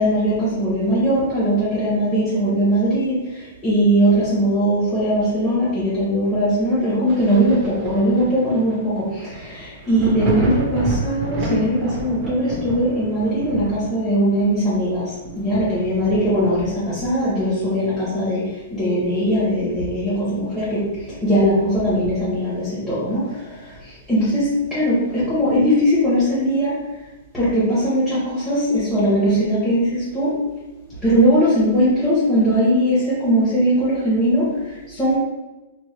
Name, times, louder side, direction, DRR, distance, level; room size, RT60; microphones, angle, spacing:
voice 1, 0.0-18.4 18.7-20.8 21.2-26.8 27.3-30.3 31.0-35.2, equal, 5° left, -10 dB, 0.7 m, -20 dB
Thunder, 7.1-18.4 18.8-20.3 20.7-20.8 21.3-22.6 24.1-24.2, right 2 dB, 25° right, 0.5 m, -31 dB
3.0 x 2.1 x 3.1 m, 1.1 s
hypercardioid pair, 165°, 0 cm